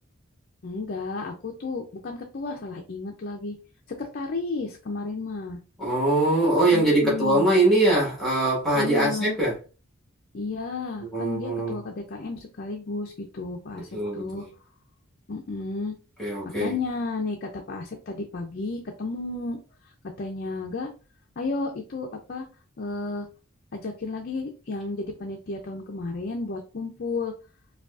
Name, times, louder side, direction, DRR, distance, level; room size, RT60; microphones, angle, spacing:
voice 1, 0.6-3.5 3.9-5.6 6.7-7.5 8.7-9.4 10.3-14.4 15.3-15.9 16.6-19.6 20.2-20.9 21.4-22.5 22.8-23.3 23.7-27.3, left 3 dB, 45° left, 0.5 m, -32 dB
voice 2, 5.8-9.5 11.1-11.8 13.9-14.5 16.2-16.7, right 1 dB, ahead, 1.5 m, -22 dB
4.9 x 2.3 x 2.4 m
head